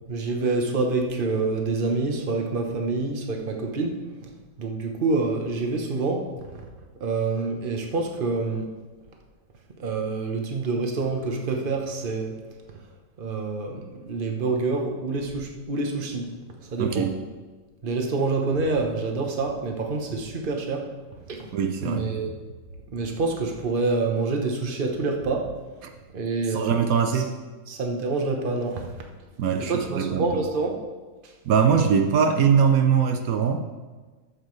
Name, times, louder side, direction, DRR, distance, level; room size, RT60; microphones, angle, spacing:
voice 1, 0.1-4.3 4.6-6.6 7.0-8.7 9.8-12.3 12.7-12.8 13.2-16.3 16.6-17.1 17.8-20.9 21.3-21.5 21.8-22.4 22.9-25.5 26.1-26.8 27.1-27.2 27.7-28.9 29.6-30.8 31.2-31.3, right 3 dB, 40° right, 2 dB, 1.2 m, -27 dB
voice 2, 16.8-17.2 21.5-22.1 26.5-27.3 29.4-30.4 31.5-33.6, right 7 dB, 80° right, 5 dB, 1.2 m, -22 dB
13.0 x 7.4 x 3.2 m, 1.3 s
omnidirectional pair, 1.5 m